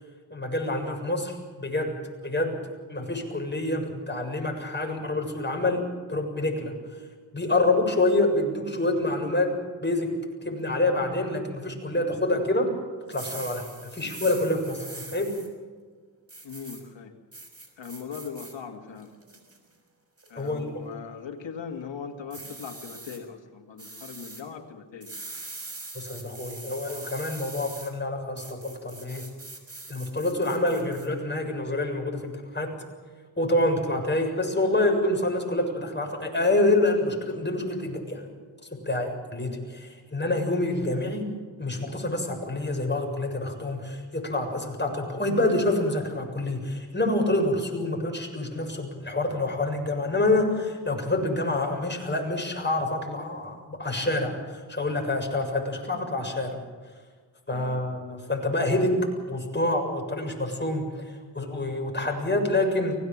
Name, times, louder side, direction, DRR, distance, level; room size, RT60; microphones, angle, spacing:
voice 1, 0.3-1.9 2.2-2.6 2.9-6.7 7.3-9.5 9.8-10.2 10.4-12.7 13.1-13.6 13.9-15.3 20.4-20.7 26.0-29.2 29.9-32.8 33.4-38.2 38.9-41.3 41.6-56.6 57.5-63.0, left 2 dB, 25° left, 2 dB, 7.2 m, -27 dB
sound 1, 13.0-15.5 16.3-16.8 17.3-18.5 19.0-19.6 20.2-20.5 22.3-23.2 23.8-24.4 25.0-27.9 28.4-31.1, right 2 dB, 35° right, 5.9 m, -42 dB
voice 2, 16.4-17.1 17.8-19.1 20.3-25.1 57.5-57.8, left 6 dB, 80° left, 3 dB, 2.6 m, -39 dB
24.0 x 19.0 x 7.6 m, 1.5 s
cardioid pair, 50°, 44 cm